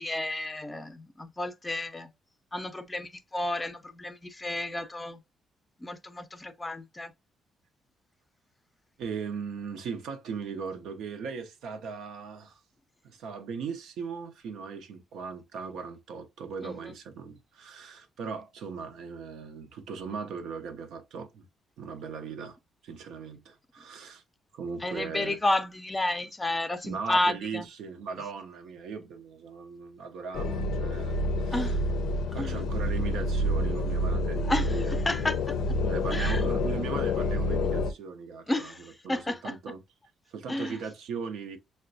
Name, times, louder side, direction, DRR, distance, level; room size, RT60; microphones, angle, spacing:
voice 1, 0.0-2.1 2.5-5.2 5.8-7.1 16.6-16.9 24.8-27.7 31.5-31.8 32.4-32.6 34.5-35.4 36.1-36.4 38.5-39.6 40.5-40.8, left 1 dB, 20° left, 0.5 m, -31 dB
voice 2, 9.0-12.6 13.0-21.5 21.8-22.6 22.8-24.2 24.5-25.4 26.2-26.3 26.8-31.7 32.3-35.0 35.9-38.7 39.0-39.8 40.3-41.6, right 5 dB, 80° right, 0.6 m, -38 dB
sound 1, 30.3-37.9, left 1 dB, 80° left, 0.4 m, -28 dB
5.7 x 2.1 x 2.6 m
cardioid pair, 90°, 0 cm